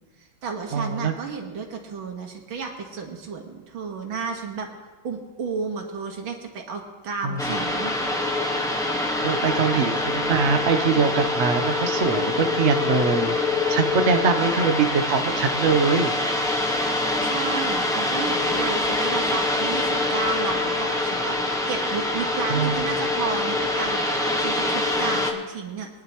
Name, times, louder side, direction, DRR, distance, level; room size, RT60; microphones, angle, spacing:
voice 1, 0.2-4.7 5.0-7.9 17.2-24.0 24.4-25.9, right 5 dB, 80° right, 2 dB, 2.2 m, -32 dB
voice 2, 0.7-1.1 7.2-7.4 9.2-16.1 22.5-22.8, right 5 dB, 50° right, 6 dB, 0.8 m, -23 dB
sound 1, 7.4-25.3, left 2 dB, 5° left, 0.5 m, -25 dB
23.0 x 10.5 x 3.0 m, 1.3 s
omnidirectional pair, 2.2 m